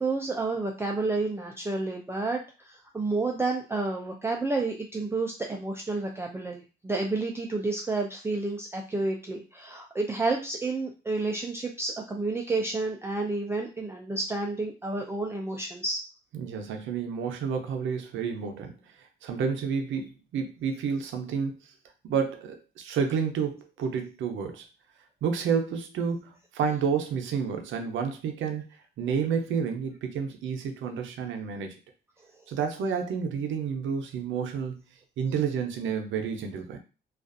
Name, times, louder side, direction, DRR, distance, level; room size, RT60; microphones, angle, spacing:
voice 1, 0.0-16.0, right 3 dB, 15° right, 0 dB, 0.3 m, -30 dB
voice 2, 16.3-18.8 19.2-21.6 22.0-24.6 25.2-28.6 29.0-31.8 32.5-34.8 35.2-36.8, right 6 dB, 75° right, 5 dB, 0.6 m, -30 dB
2.4 x 2.3 x 2.4 m, 0.31 s
cardioid pair, 90°, 20 cm